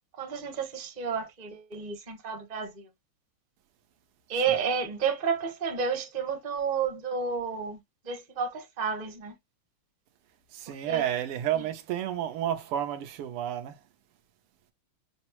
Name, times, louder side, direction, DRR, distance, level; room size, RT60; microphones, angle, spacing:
voice 1, 0.1-2.9 4.3-9.3 10.9-11.0, right 6 dB, 35° right, 0.6 m, -31 dB
voice 2, 10.5-13.8, right 11 dB, 90° right, 1.7 m, -31 dB
6.1 x 2.0 x 2.9 m
omnidirectional pair, 2.4 m